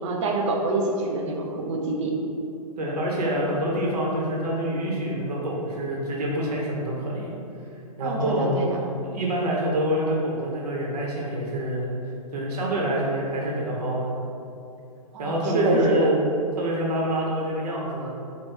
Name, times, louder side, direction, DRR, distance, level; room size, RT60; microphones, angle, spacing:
voice 1, 0.0-2.1 8.0-8.8 15.1-16.1, right 2 dB, 50° right, 0 dB, 0.6 m, -25 dB
voice 2, 2.8-7.3 8.0-8.6 9.0-11.9 12.3-14.1 15.2-16.2 16.6-18.1, equal, 80° right, -3 dB, 0.9 m, -26 dB
4.5 x 2.2 x 3.3 m, 2.7 s
hypercardioid pair, 140°, 20 cm